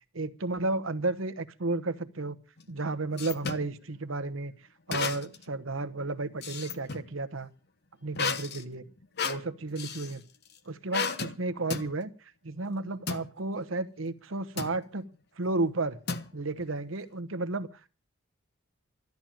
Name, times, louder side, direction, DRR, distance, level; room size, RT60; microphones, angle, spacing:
voice 1, 0.1-2.3 2.7-4.5 4.9-7.5 8.0-8.8 9.2-10.2 10.7-12.1 12.4-15.0 15.4-16.0 16.3-17.7, right 2 dB, 70° right, 12 dB, 1.1 m, -32 dB
sound 1, 2.6-3.7 4.9-5.5 5.9-7.1 8.1-10.2 10.9-11.4 11.7-11.9 13.1-13.3 14.6-14.8 16.1-16.6, left 5 dB, 50° left, 1.1 m, -33 dB
13.0 x 10.5 x 7.5 m, 0.37 s
head